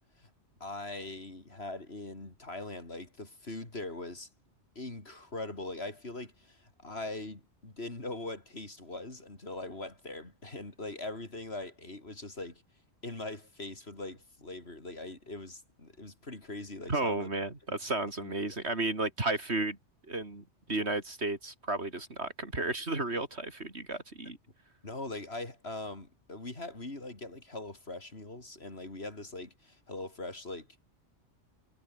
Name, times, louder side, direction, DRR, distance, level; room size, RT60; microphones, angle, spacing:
voice 1, 0.6-4.3 4.8-12.6 13.0-17.3 18.2-18.3 24.8-30.8, left 2 dB, 60° left, 4.5 m, -41 dB
voice 2, 16.9-19.8 20.1-24.4, right 2 dB, 65° right, 4.3 m, -33 dB
omnidirectional pair, 1.2 m